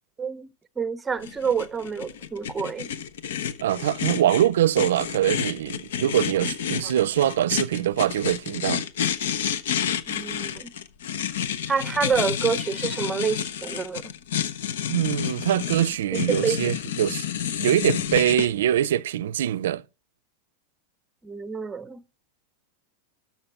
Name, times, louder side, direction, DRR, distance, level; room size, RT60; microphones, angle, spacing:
voice 1, 0.2-0.5 0.8-2.9 6.4-6.5 10.1-10.7 11.7-14.1 16.4-16.6 21.2-22.0, right 6 dB, 10° right, 0.6 m, -28 dB
sound 1, 1.2-18.5, left 9 dB, 85° left, 1.1 m, -30 dB
voice 2, 3.6-8.8 14.9-17.2 17.6-19.8, right 11 dB, 90° right, 0.5 m, -23 dB
13.0 x 6.0 x 5.9 m
supercardioid pair, 165°, 0 cm